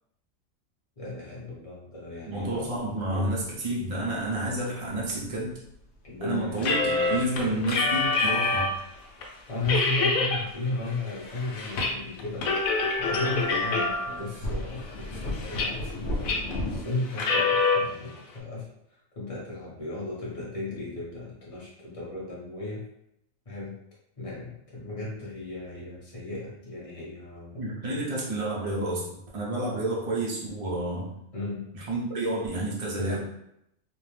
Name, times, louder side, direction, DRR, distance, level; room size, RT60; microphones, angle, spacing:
voice 1, 1.0-2.8 3.1-3.3 6.0-7.7 9.5-22.8 23.5-23.8 24.2-27.6 27.9-28.1 31.3-31.7 33.0-33.2, left 2 dB, 30° left, -6 dB, 0.9 m, -35 dB
sound 1, 2.3-16.8, left 1 dB, 65° left, 0.8 m, -39 dB
voice 2, 2.3-5.5 6.2-6.8 7.1-8.7 27.6-31.1 31.9-33.2, right 1 dB, 65° right, -5 dB, 0.3 m, -30 dB
sound 2, 6.6-8.8 9.2-9.3 9.6-10.4 10.8-11.9 12.2-14.2 14.8-15.9 16.2-16.6 17.1-17.8, left 3 dB, 85° left, 1.0 m, -26 dB
2.6 x 2.1 x 3.1 m, 0.79 s
omnidirectional pair, 1.4 m